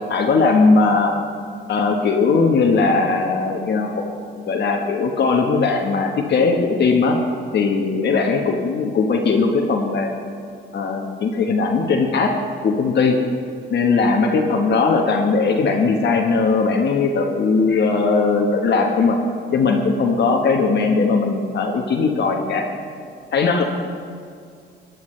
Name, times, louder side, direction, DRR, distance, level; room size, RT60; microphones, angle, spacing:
voice 1, 0.1-1.1 1.7-4.0 4.5-7.2 7.5-10.1 10.7-12.3 12.6-13.2 13.7-19.2 19.5-22.7 23.3-23.6, left 4 dB, 60° left, 2 dB, 1.2 m, -19 dB
18.5 x 10.5 x 3.2 m, 2.3 s
cardioid pair, 90°, 20 cm